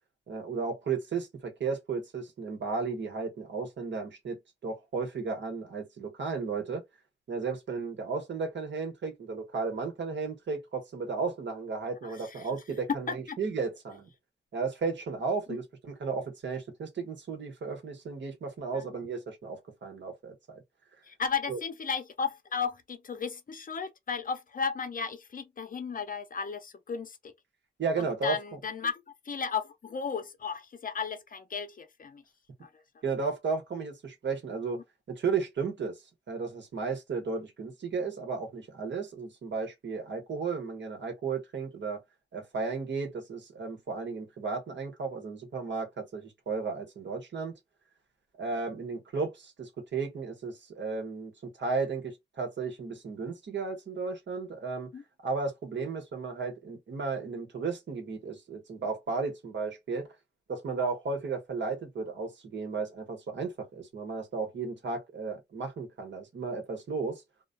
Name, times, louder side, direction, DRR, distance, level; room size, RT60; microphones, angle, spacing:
voice 1, 0.3-6.8 7.3-14.1 14.5-20.6 21.5-21.6 27.8-28.4 33.0-34.8 35.1-36.0 36.3-42.0 42.3-47.6 48.4-54.9 55.2-60.1 60.5-67.2, right 4 dB, 75° right, 1.2 m, -34 dB
voice 2, 12.0-12.5 13.1-13.4 15.5-15.6 18.7-18.9 21.0-27.3 28.0-32.2 32.6-32.7 34.8-34.9 54.9-55.0, left 6 dB, 45° left, 0.6 m, -35 dB
2.3 x 2.2 x 2.5 m
cardioid pair, 70°, 19 cm